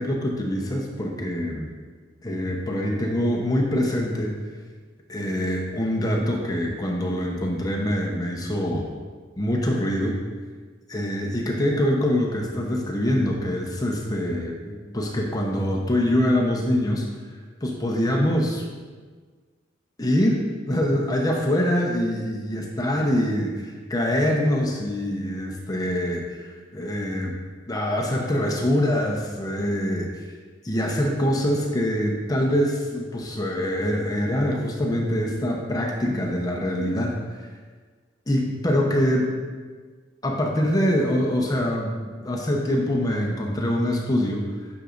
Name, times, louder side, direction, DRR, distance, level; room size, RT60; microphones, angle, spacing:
voice 1, 0.0-1.7 2.2-4.4 5.1-8.9 9.4-10.2 10.9-17.1 17.6-18.6 20.0-27.4 27.7-30.2 30.6-37.5 38.3-39.3 40.2-44.5, equal, 20° left, 0 dB, 0.8 m, -24 dB
9.7 x 6.3 x 2.5 m, 1.5 s
head